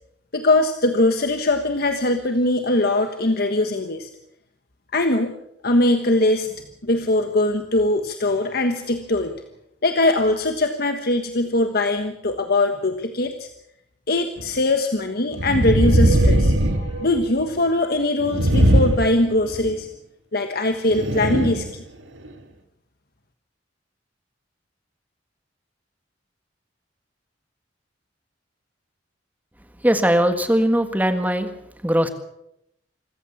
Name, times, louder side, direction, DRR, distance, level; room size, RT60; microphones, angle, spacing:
voice 1, 0.3-4.1 4.9-5.3 5.6-6.5 6.8-9.3 9.8-13.5 14.1-19.9 20.3-21.8, left 2 dB, 55° left, 6 dB, 1.4 m, -21 dB
sound 1, 14.4-14.5 15.3-17.5 18.2-19.8 20.9-21.7 22.3-22.4, right 1 dB, 85° right, 2.2 m, -19 dB
voice 2, 29.8-31.5 31.8-32.1, equal, 10° right, 8 dB, 1.7 m, -19 dB
26.0 x 15.0 x 7.2 m, 0.80 s
head